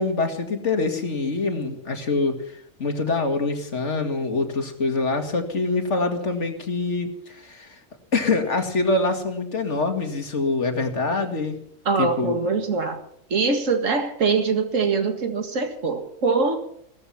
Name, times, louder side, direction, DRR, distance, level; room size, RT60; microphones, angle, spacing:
voice 1, 0.0-7.8 8.1-11.6 12.0-12.4, left 3 dB, 60° left, 6 dB, 2.5 m, -25 dB
voice 2, 11.9-13.0 13.3-16.6, right 4 dB, 75° right, 6 dB, 2.3 m, -23 dB
17.0 x 14.0 x 5.7 m, 0.66 s
omnidirectional pair, 1.4 m